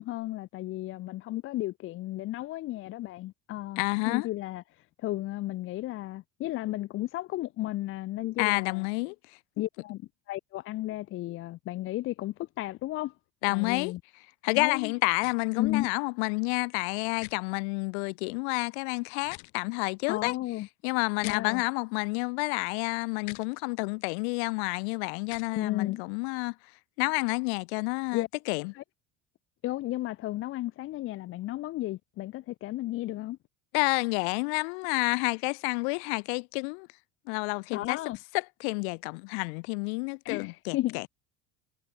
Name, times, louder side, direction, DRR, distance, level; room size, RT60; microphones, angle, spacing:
voice 1, 0.0-8.9 9.6-13.2 13.5-14.0 14.5-14.9 15.6-15.9 20.1-20.7 21.2-21.6 25.5-26.0 28.1-28.3 28.7-28.8 29.6-33.4 37.7-38.2 40.2-41.0, left 16 dB, 40° left, 1.1 m, -33 dB
voice 2, 3.8-4.3 8.4-9.2 13.4-13.9 14.4-20.3 20.8-26.5 27.0-28.7 33.7-36.9 37.3-38.0 38.6-41.0, left 37 dB, 80° left, 0.7 m, -29 dB
sound 1, 15.2-15.4 17.2-17.3 19.2-19.5 21.2-21.4 23.2-23.5 25.2-25.5, left 29 dB, 60° left, 1.6 m, -43 dB
cardioid pair, 175°, 33 cm